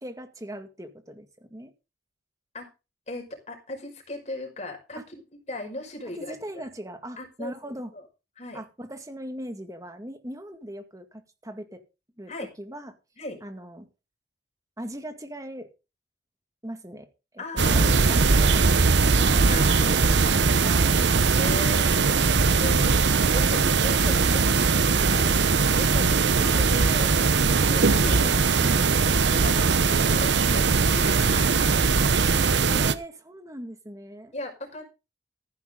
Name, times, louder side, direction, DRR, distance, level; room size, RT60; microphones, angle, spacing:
voice 1, 0.0-1.7 5.0-5.1 6.1-7.9 8.5-11.8 12.2-12.3 12.6-13.0 13.4-13.9 14.8-15.7 16.6-17.1 17.3-20.3 20.6-21.0 24.0-24.6 28.6-28.8 32.7-34.3, right 1 dB, 20° right, 7 dB, 1.9 m, -39 dB
voice 2, 3.1-5.0 5.5-6.4 7.2-7.5 7.9-8.0 8.4-8.6 12.3-12.5 13.2-13.4 17.4-18.2 19.3-19.9 20.2-20.4 21.0-21.9 22.6-23.0 23.3-24.4 25.0-28.8 29.3-31.7 34.3-34.8, left 1 dB, 40° left, 2 dB, 5.5 m, -37 dB
sound 1, 17.6-32.9, right 4 dB, 75° right, 0.9 m, -20 dB
14.5 x 11.0 x 3.8 m, 0.29 s
head